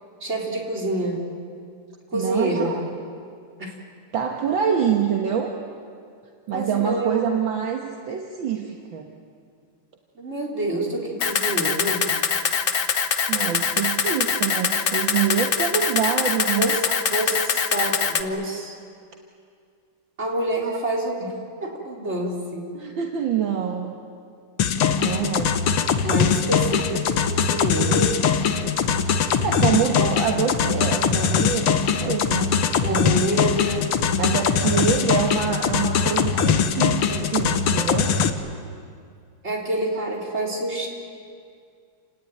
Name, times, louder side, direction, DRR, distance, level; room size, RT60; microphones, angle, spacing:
voice 1, 0.2-1.3 2.1-2.7 3.6-3.7 6.5-7.1 10.1-12.1 16.6-18.8 20.2-21.3 21.6-22.7 26.0-28.3 32.8-33.9 35.0-35.1 39.4-40.9, right 1 dB, 30° right, -2 dB, 4.4 m, -27 dB
voice 2, 2.1-2.8 4.1-5.6 6.5-9.1 13.3-17.0 20.6-20.7 22.7-23.9 25.0-25.7 29.4-33.2 34.2-38.2, right 8 dB, 65° right, 2 dB, 2.1 m, -26 dB
Camera, 11.2-18.2, left 6 dB, 50° left, 1.1 m, -23 dB
sound 1, 24.6-38.3, left 7 dB, 85° left, 2.1 m, -21 dB
29.0 x 19.0 x 9.3 m, 2.3 s
omnidirectional pair, 2.3 m